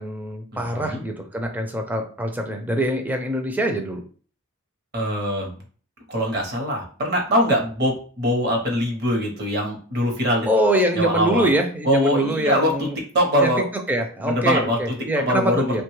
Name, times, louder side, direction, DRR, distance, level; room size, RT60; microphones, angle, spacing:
voice 1, 0.0-4.0 10.5-13.0 13.4-15.8, right 1 dB, 10° right, 4 dB, 0.4 m, -24 dB
voice 2, 0.5-1.0 4.9-5.6 6.1-10.5 10.9-11.5 11.8-12.9 13.1-13.6 14.2-15.8, equal, 50° right, 1 dB, 0.8 m, -23 dB
3.0 x 2.2 x 3.0 m, 0.42 s
head